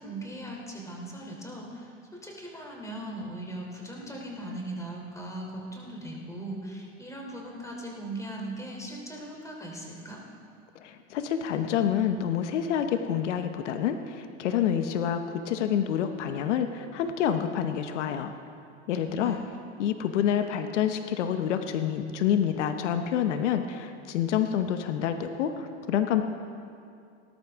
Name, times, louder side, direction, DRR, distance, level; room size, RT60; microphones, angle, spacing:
voice 1, 0.0-1.9 2.2-10.2 19.0-19.4, right 1 dB, 10° left, -1 dB, 3.2 m, -39 dB
voice 2, 10.8-18.3 18.9-19.4 19.8-26.2, left 9 dB, 85° left, 8 dB, 0.9 m, -27 dB
19.0 x 12.0 x 3.6 m, 2.4 s
supercardioid pair, 110°, 35 cm